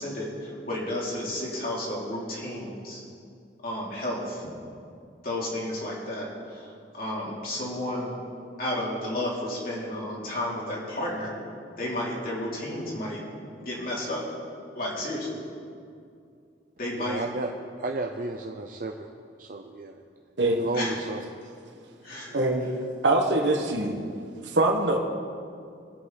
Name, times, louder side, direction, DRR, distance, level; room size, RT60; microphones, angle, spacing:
voice 1, 0.0-3.0 3.6-4.5 5.2-6.7 6.9-8.2 8.6-11.4 11.8-13.2 13.6-14.3 14.7-15.3 16.8-17.2 20.7-20.9 22.0-22.4, left 1 dB, 50° left, -5 dB, 3.2 m, -32 dB
voice 2, 17.0-17.5 17.8-19.1 19.4-20.0 20.5-21.2, right 2 dB, 50° right, 3 dB, 0.6 m, -33 dB
voice 3, 22.3-22.7 23.0-24.0 24.4-25.0, right 2 dB, 75° right, 2 dB, 1.4 m, -23 dB
21.5 x 8.1 x 4.1 m, 2.4 s
head